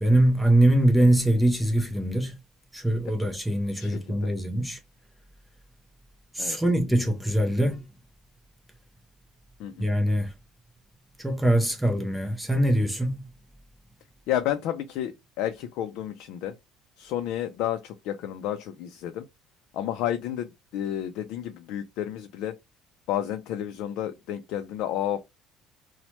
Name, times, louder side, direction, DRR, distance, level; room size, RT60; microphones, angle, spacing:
voice 1, 0.0-2.4 2.7-4.8 6.3-7.8 9.8-10.3 11.2-13.2, right 1 dB, 5° right, 0.4 m, -23 dB
voice 2, 3.8-4.3 6.4-6.6 9.6-9.9 14.3-16.6 17.0-19.3 19.7-22.5 23.1-25.2, left 11 dB, 65° left, 0.3 m, -31 dB
2.9 x 2.0 x 3.0 m
cardioid pair, 175°, 0 cm